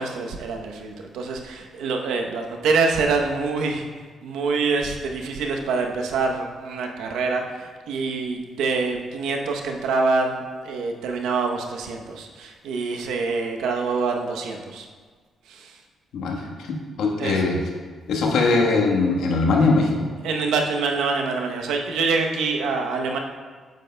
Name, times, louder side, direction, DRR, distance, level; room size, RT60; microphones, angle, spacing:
voice 1, 0.0-3.8 4.2-14.9 15.5-15.8 17.2-17.4 20.2-23.2, right 4 dB, 85° right, 2 dB, 0.8 m, -25 dB
voice 2, 16.1-17.6 18.1-20.1, left 3 dB, 75° left, 0 dB, 1.2 m, -21 dB
8.9 x 7.8 x 2.2 m, 1.5 s
cardioid pair, 70°, 0 cm